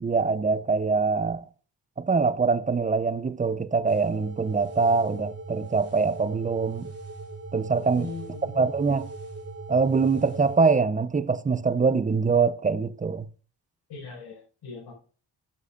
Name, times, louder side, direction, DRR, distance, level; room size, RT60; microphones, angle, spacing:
voice 1, 0.0-1.4 2.0-6.9 7.5-8.1 8.6-9.1 9.7-13.3, right 4 dB, 20° right, 0.6 m, -24 dB
sound 1, 3.9-10.6, right 3 dB, 35° right, 3.4 m, -39 dB
voice 2, 7.9-8.6 13.9-14.9, left 5 dB, 85° left, 5.2 m, -40 dB
13.5 x 8.3 x 2.4 m
cardioid pair, 100°, 39 cm